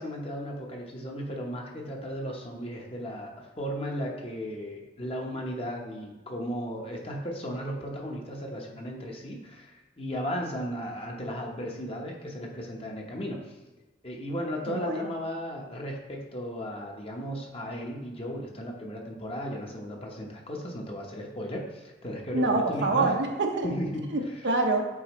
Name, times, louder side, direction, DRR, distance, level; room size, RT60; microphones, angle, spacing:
voice 1, 0.0-13.5 14.0-23.1 23.6-24.1, equal, 35° left, 0 dB, 1.0 m, -35 dB
voice 2, 14.7-15.1 22.3-23.7 24.1-24.9, right 3 dB, 75° right, 2 dB, 0.8 m, -26 dB
8.6 x 4.0 x 3.1 m, 1.1 s
head